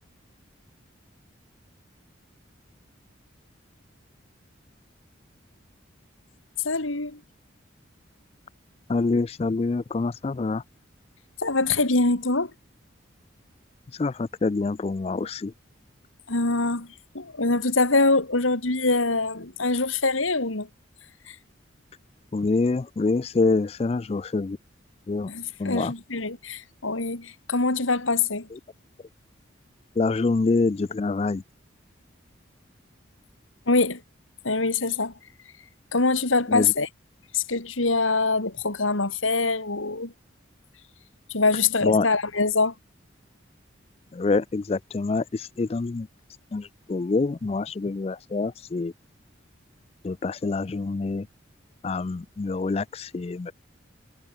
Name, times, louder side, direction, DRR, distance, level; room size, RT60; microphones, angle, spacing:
voice 1, 6.6-7.2 11.4-12.5 16.3-16.9 17.1-20.7 21.3-21.4 25.3-28.5 33.7-34.0 34.4-35.1 35.9-36.9 37.3-40.1 41.3-42.7, left 3 dB, 90° left, 3.0 m, -24 dB
voice 2, 8.9-10.6 13.9-15.5 22.3-24.6 25.1-25.3 25.6-25.9 30.0-31.4 36.5-36.7 41.8-42.1 44.1-46.1 46.5-48.9 50.0-51.3 51.8-53.5, left 3 dB, 30° left, 0.3 m, -26 dB
head